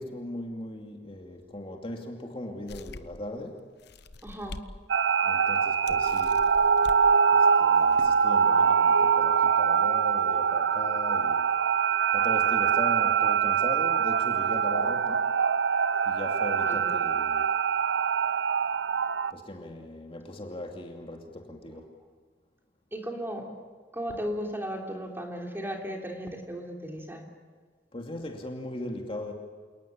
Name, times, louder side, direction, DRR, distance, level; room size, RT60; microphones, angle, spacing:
voice 1, 0.0-3.6 5.2-6.4 7.3-11.5 12.1-15.2 16.1-17.5 19.3-21.9 27.9-29.3, left 1 dB, 30° left, 2 dB, 2.6 m, -38 dB
sound 1, 2.7-3.3 3.8-4.7 5.1-5.2 5.9-7.0 7.7-8.2, left 2 dB, 65° left, 1.1 m, -44 dB
voice 2, 4.2-4.6 15.9-16.0 16.7-17.0 22.9-23.5 23.9-27.2, equal, 15° right, 1 dB, 3.5 m, -35 dB
sound 2, 4.9-19.3, right 6 dB, 75° right, 0.7 m, -24 dB
28.0 x 19.0 x 8.8 m, 1.5 s
head